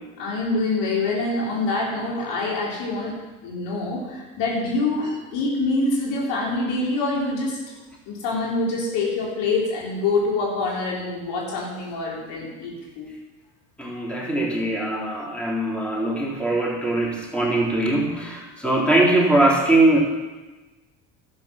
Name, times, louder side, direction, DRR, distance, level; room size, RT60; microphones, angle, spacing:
voice 1, 0.2-3.1 3.4-7.6 8.1-13.1, left 3 dB, 70° left, -3 dB, 3.9 m, -25 dB
voice 2, 13.8-20.0, right 2 dB, 5° left, -3 dB, 3.7 m, -21 dB
12.0 x 8.6 x 5.9 m, 1.2 s
hypercardioid pair, 65°, 44 cm